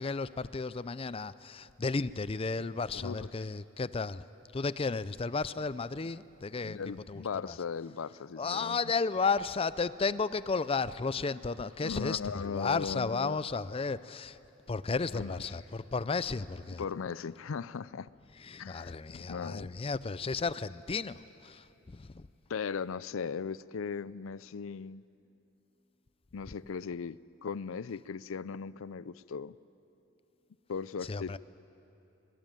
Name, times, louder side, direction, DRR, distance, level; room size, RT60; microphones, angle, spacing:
voice 1, 0.0-4.2 4.5-6.8 7.1-7.6 8.4-14.4 14.7-16.8 18.4-22.3 31.0-31.4, left 4 dB, 30° left, 16 dB, 0.5 m, -33 dB
voice 2, 2.9-3.3 6.6-8.9 11.8-13.4 15.1-15.4 16.8-18.1 18.6-19.7 22.5-25.0 26.3-29.6 30.7-31.4, left 5 dB, 80° left, 18 dB, 0.5 m, -38 dB
23.5 x 21.5 x 9.1 m, 2.9 s
head